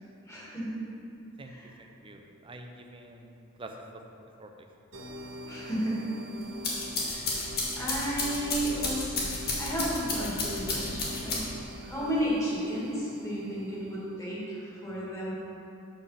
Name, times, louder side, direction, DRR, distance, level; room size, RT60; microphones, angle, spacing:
voice 1, 0.3-0.8 1.4-1.7 5.4-6.1 7.0-7.5 7.8-15.4, equal, 15° left, -7 dB, 2.0 m, -33 dB
voice 2, 1.8-3.3 3.6-3.7 4.4-4.7, right 2 dB, 25° right, 3 dB, 0.6 m, -47 dB
sound 1, 4.9-14.3, equal, 70° right, 1.1 m, -45 dB
sound 2, 6.4-11.7, left 2 dB, 50° left, 1.6 m, -32 dB
6.7 x 5.8 x 5.5 m, 2.7 s
head